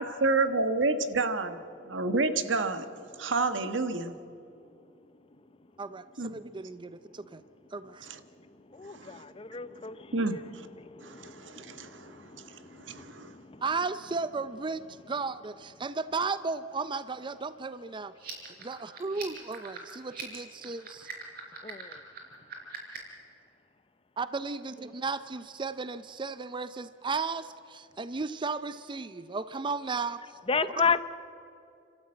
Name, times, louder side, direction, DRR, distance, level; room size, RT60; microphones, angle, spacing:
voice 1, 0.0-1.6 1.9-2.8 3.2-4.1 6.2-6.3 8.1-8.2 8.9-9.2 10.1-10.4 11.0-12.2 12.5-13.3, right 3 dB, 85° right, 10 dB, 1.3 m, -29 dB
voice 2, 5.8-7.4 7.7-8.1 13.6-18.1 18.6-21.1 24.2-30.4 30.8-31.0, right 4 dB, 25° right, 14 dB, 0.5 m, -35 dB
voice 3, 8.4-13.6 21.6-22.0 30.5-31.0, left 5 dB, 30° left, 14 dB, 0.7 m, -34 dB
sound 1, 18.1-23.2, right 6 dB, 55° right, 4.6 m, -43 dB
29.0 x 13.0 x 8.8 m, 2.6 s
head